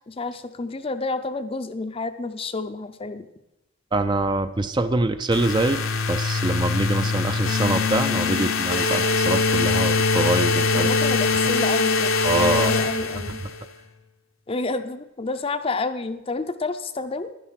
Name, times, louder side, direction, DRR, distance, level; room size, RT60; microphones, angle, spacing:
voice 1, 0.0-3.3 10.7-13.4 14.5-17.3, left 3 dB, 30° left, 10 dB, 0.5 m, -30 dB
voice 2, 3.9-5.8 6.1-10.9 12.2-12.7, right 2 dB, 20° right, 10 dB, 0.4 m, -24 dB
sound 1, 5.3-13.6, left 4 dB, 85° left, 1.2 m, -22 dB
11.0 x 10.0 x 5.7 m, 0.96 s
head